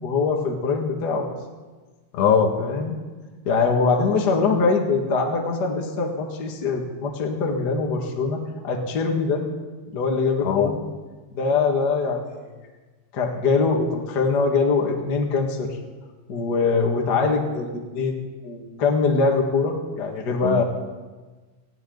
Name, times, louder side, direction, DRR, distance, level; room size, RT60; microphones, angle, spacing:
voice 1, 0.0-1.3 2.6-3.0 3.4-9.4 9.9-10.8 11.3-12.4 13.1-15.7 16.3-18.2 18.4-20.6, left 4 dB, 35° left, 1 dB, 1.7 m, -23 dB
voice 2, 2.1-2.6 10.4-10.7 20.4-20.6, left 7 dB, 85° left, 6 dB, 3.3 m, -20 dB
19.5 x 17.0 x 4.0 m, 1.3 s
omnidirectional pair, 4.7 m